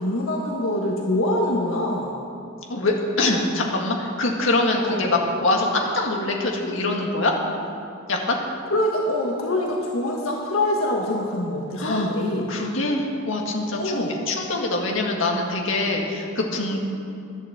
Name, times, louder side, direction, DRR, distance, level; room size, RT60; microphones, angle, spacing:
voice 1, 0.0-2.1 4.8-5.0 8.7-12.5 13.8-14.2 16.7-16.8, left 1 dB, 85° left, -1 dB, 1.6 m, -24 dB
voice 2, 2.7-7.4 8.1-8.4 11.8-12.1 12.5-16.8, left 2 dB, 65° left, 0 dB, 1.9 m, -24 dB
11.5 x 11.0 x 7.8 m, 2.5 s
head